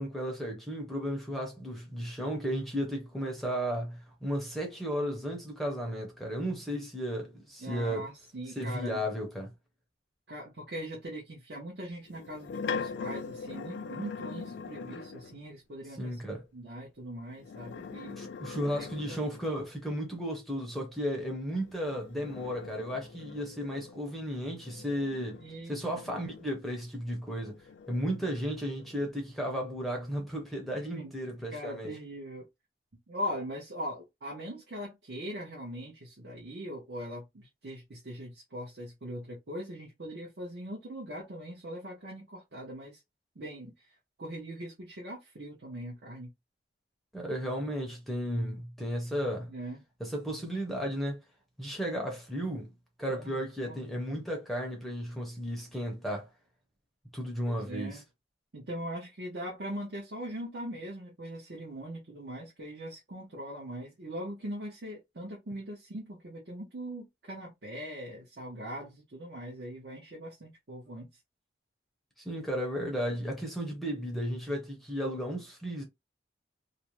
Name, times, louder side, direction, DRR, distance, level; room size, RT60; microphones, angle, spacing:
voice 1, 0.0-8.1 8.6-9.5 16.0-16.4 18.0-27.6 27.9-31.9 47.1-49.5 50.0-51.2 51.6-52.7 53.0-56.3 57.1-58.0 72.2-75.8, equal, ahead, 0.6 m, -34 dB
voice 2, 7.6-9.0 10.3-16.2 16.5-18.2 18.7-19.2 25.4-25.8 30.9-31.1 31.5-32.4 33.1-43.0 43.3-43.9 44.2-46.3 49.5-49.8 53.1-53.4 53.6-53.9 57.4-58.0 58.5-71.1, equal, 65° right, 0.8 m, -41 dB
sound 1, 12.1-15.4 17.3-19.7 21.6-26.8 27.4-29.1, left 5 dB, 90° left, 0.3 m, -42 dB
2.5 x 2.1 x 2.9 m
head